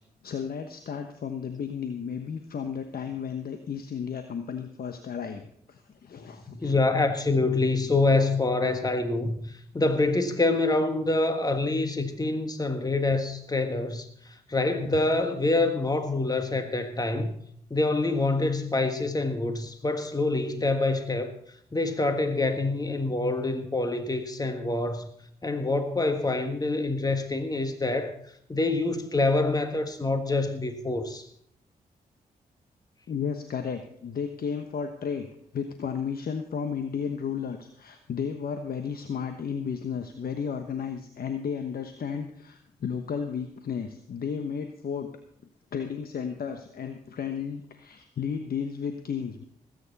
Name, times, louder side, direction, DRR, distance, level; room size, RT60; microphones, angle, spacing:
voice 1, 0.2-5.4 5.7-6.8 14.8-14.9 33.1-35.3 35.5-45.1 45.7-49.4, left 7 dB, 65° left, 7 dB, 1.2 m, -33 dB
voice 2, 6.5-17.3 17.7-21.3 21.7-25.1 25.4-28.1 28.5-31.3, left 2 dB, 25° left, 7 dB, 1.6 m, -26 dB
19.0 x 9.4 x 4.1 m, 0.68 s
supercardioid pair, 50°, 16 cm